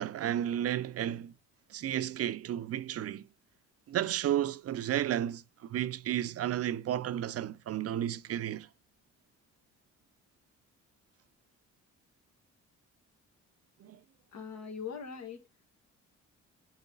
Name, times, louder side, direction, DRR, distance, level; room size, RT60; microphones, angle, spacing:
voice 1, 0.0-1.3 1.7-3.3 3.9-8.7 13.8-14.0, right 11 dB, 50° right, 0.5 m, -32 dB
voice 2, 14.3-15.5, left 6 dB, 60° left, 1.8 m, -41 dB
8.1 x 3.3 x 3.9 m
cardioid pair, 90°, 30 cm